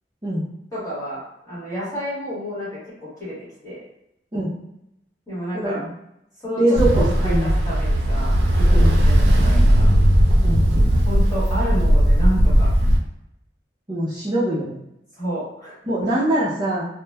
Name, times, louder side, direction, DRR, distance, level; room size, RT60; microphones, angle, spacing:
voice 1, 0.7-3.4 3.6-3.8 5.3-5.8 6.4-9.9 11.0-12.7 15.1-15.8, equal, 20° left, -10 dB, 1.3 m, -30 dB
voice 2, 5.5-5.9 6.6-7.5 8.7-9.0 10.4-10.6 13.9-14.8 15.9-16.9, right 1 dB, 25° right, -10 dB, 0.5 m, -22 dB
Ocean, 6.7-13.0, equal, 85° right, 0.4 m, -17 dB
2.8 x 2.0 x 2.2 m, 0.82 s
head